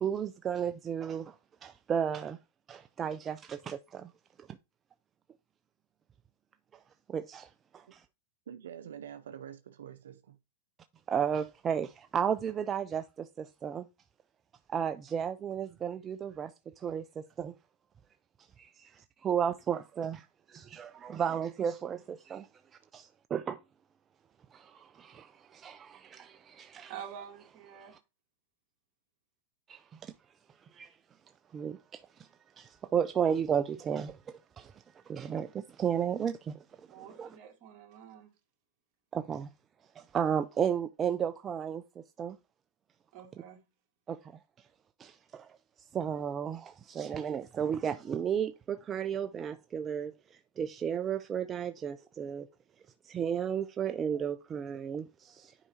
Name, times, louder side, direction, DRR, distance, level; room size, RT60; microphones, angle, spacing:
voice 1, 0.0-1.4 1.6-2.4 2.7-4.1 4.4-4.5 7.1-8.0 11.1-13.9 14.7-17.6 18.6-22.5 22.9-23.6 24.5-26.9 27.8-28.0 29.7-30.1 30.7-31.0 31.5-32.3 32.6-37.4 39.1-39.5 40.0-42.4 44.1-44.3 45.0-52.5 53.0-55.6, right 8 dB, 25° right, 0.4 m, -34 dB
voice 2, 8.5-10.4, right 9 dB, 85° right, 0.5 m, -46 dB
voice 3, 26.9-27.9 36.9-38.3 43.1-43.6, right 9 dB, 45° right, 2.2 m, -47 dB
9.8 x 4.7 x 2.9 m
hypercardioid pair, 120°, 0 cm